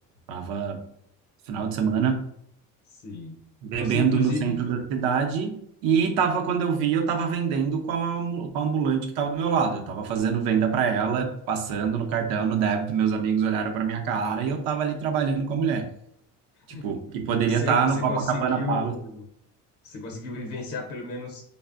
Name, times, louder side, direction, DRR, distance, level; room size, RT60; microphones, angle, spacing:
voice 1, 0.3-0.8 1.5-2.2 3.6-15.9 16.7-18.9, right 6 dB, 80° right, 4 dB, 0.6 m, -25 dB
voice 2, 2.9-3.4 3.7-4.6 16.6-16.9 17.3-19.2 19.8-21.4, left 3 dB, 55° left, 2 dB, 0.6 m, -34 dB
3.2 x 2.1 x 2.4 m, 0.72 s
cardioid pair, 100°, 35 cm